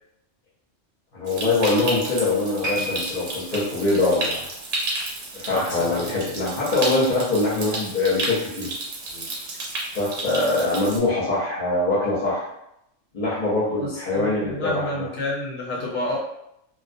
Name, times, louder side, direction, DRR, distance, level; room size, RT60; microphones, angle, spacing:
voice 1, 1.1-4.5 5.4-8.7 9.1-9.3 9.9-12.5 13.1-15.1, left 2 dB, 45° left, -8 dB, 0.8 m, -23 dB
Stream, 1.3-11.0, right 2 dB, 85° right, 1.0 m, -32 dB
sound 1, 2.6-5.9 6.2-6.5 7.2-7.3, left 1 dB, 55° right, 0.6 m, -36 dB
voice 2, 5.5-6.4 13.8-16.2, left 1 dB, 75° left, -3 dB, 0.9 m, -30 dB
2.2 x 2.2 x 2.5 m, 0.81 s
omnidirectional pair, 1.3 m